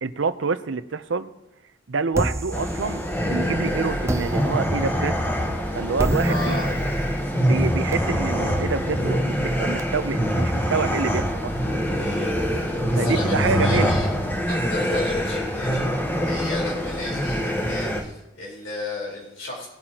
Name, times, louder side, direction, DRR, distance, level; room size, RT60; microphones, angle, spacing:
voice 1, 0.0-1.3 1.9-5.2 5.7-6.7 7.4-11.5 12.9-14.0, right 4 dB, 85° right, 12 dB, 0.7 m, -27 dB
sound 1, 2.1-3.5 4.1-9.8, right 1 dB, 15° right, 0.5 m, -31 dB
sound 2, 2.5-18.0, equal, 10° left, 1.1 m, -24 dB
voice 2, 6.2-6.7 12.0-14.1 14.5-15.9 16.2-19.7, left 2 dB, 85° left, -4 dB, 4.2 m, -34 dB
19.5 x 9.0 x 2.9 m, 0.94 s
head